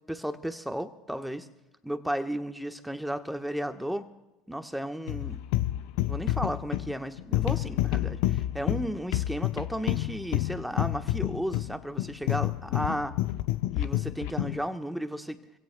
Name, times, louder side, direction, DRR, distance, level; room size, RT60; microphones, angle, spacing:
voice 1, 0.1-1.5 1.8-4.0 4.5-5.4 6.1-13.1 13.7-15.4, equal, ahead, 7 dB, 1.3 m, -34 dB
sound 1, 5.1-14.6, left 15 dB, 70° left, 0.6 m, -29 dB
26.5 x 16.5 x 2.3 m, 0.99 s
hypercardioid pair, 80°, 0 cm